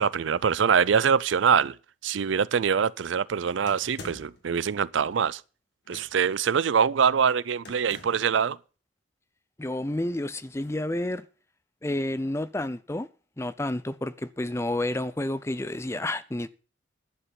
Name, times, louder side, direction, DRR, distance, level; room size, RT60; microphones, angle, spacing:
voice 1, 0.0-1.8 2.0-5.4 5.9-8.6, right 7 dB, 80° right, 0.4 m, -24 dB
sound 1, 3.7-4.5 5.8-6.4 7.6-8.3, left 2 dB, 60° left, 2.1 m, -45 dB
voice 2, 9.6-11.2 11.8-13.1 13.4-16.5, left 1 dB, 15° left, 0.5 m, -30 dB
11.5 x 8.0 x 5.9 m
head